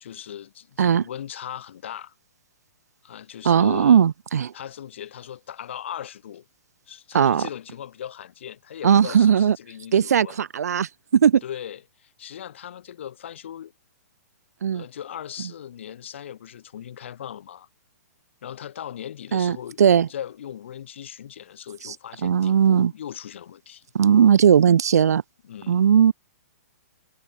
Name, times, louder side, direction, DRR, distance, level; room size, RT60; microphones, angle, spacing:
voice 1, 0.0-2.1 3.0-4.0 4.5-6.4 6.9-10.4 11.4-13.7 14.7-17.7 18.4-19.8 20.1-23.9 25.4-25.9, left 10 dB, 50° left, 1.1 m, -38 dB
voice 2, 3.4-4.5 7.1-7.5 8.8-9.6 9.9-11.4 14.6-14.8 19.3-20.1 21.8-21.9 22.2-22.9 23.9-25.2 25.7-26.1, right 8 dB, 80° right, 0.7 m, -18 dB
hypercardioid pair, 175°, 9 cm